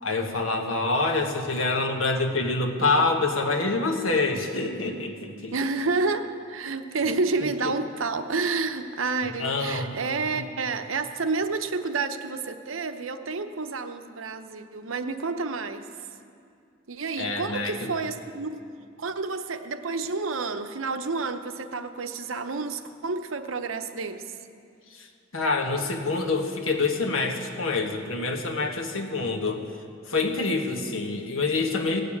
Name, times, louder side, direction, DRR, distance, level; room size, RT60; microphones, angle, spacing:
voice 1, 0.0-5.5 7.0-7.2 9.2-9.9 10.3-10.4 17.2-17.9 24.9-25.1 25.3-29.6 30.1-32.0, left 3 dB, 85° left, 3 dB, 1.5 m, -26 dB
voice 2, 5.5-15.9 16.9-18.7 19.0-24.4 30.8-31.0, right 4 dB, 75° right, 8 dB, 0.8 m, -30 dB
17.5 x 6.8 x 8.7 m, 2.3 s
head